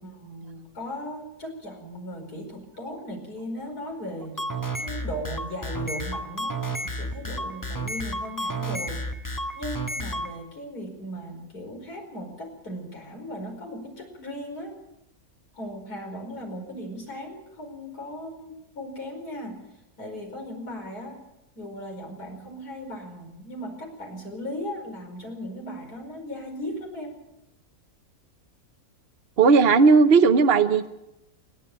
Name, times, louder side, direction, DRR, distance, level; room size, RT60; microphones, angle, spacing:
voice 1, 0.0-6.6 6.8-9.0 9.5-14.8 15.5-19.6 20.0-21.2 21.6-27.1, equal, 90° left, 2 dB, 5.6 m, -37 dB
sound 1, 4.2-10.3, right 1 dB, 15° left, 1.5 m, -31 dB
voice 2, 29.4-30.9, right 4 dB, 45° right, 8 dB, 1.1 m, -16 dB
29.0 x 10.0 x 9.0 m, 0.91 s
omnidirectional pair, 1.6 m